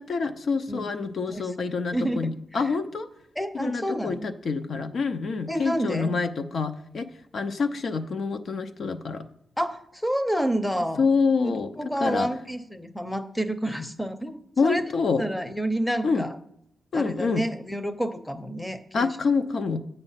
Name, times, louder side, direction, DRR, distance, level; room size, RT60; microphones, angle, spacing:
voice 1, 0.0-3.1 3.5-9.3 11.0-12.3 14.6-15.2 16.0-16.3 16.9-17.4 18.9-19.8, left 4 dB, 60° left, 8 dB, 0.5 m, -27 dB
voice 2, 1.9-2.3 3.4-4.2 5.5-6.1 9.6-11.1 11.4-14.8 15.2-16.3 16.9-19.1, right 1 dB, 5° left, 11 dB, 0.6 m, -29 dB
7.9 x 5.4 x 5.7 m, 0.74 s
wide cardioid pair, 115°, 0 cm